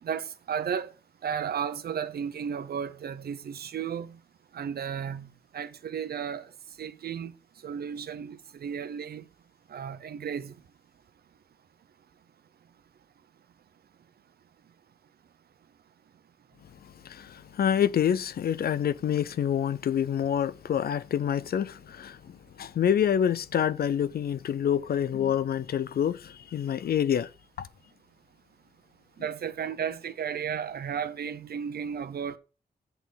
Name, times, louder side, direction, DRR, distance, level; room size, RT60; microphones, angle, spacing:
voice 1, 0.0-0.9 1.2-4.2 4.5-6.5 6.8-7.3 7.6-9.2 9.7-10.5 29.2-32.4, right 7 dB, 80° right, 0.8 m, -34 dB
voice 2, 17.0-22.2 22.6-27.3 27.6-27.7, left 9 dB, 75° left, 0.6 m, -27 dB
8.1 x 4.1 x 7.0 m
wide cardioid pair, 120°, 16 cm